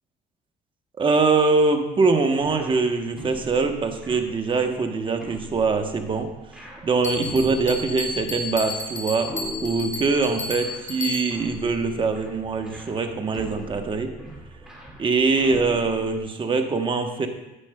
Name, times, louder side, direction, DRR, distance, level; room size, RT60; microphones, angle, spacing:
voice 1, 1.0-6.3 6.8-9.3 9.6-14.1 15.0-17.3, right 4 dB, 30° right, 5 dB, 1.0 m, -23 dB
sound 1, 2.4-16.2, right 1 dB, 5° right, 2.2 m, -41 dB
Bell, 7.0-11.6, left 2 dB, 40° left, 1.1 m, -33 dB
9.8 x 9.7 x 2.2 m, 1.0 s
cardioid pair, 110°, 17 cm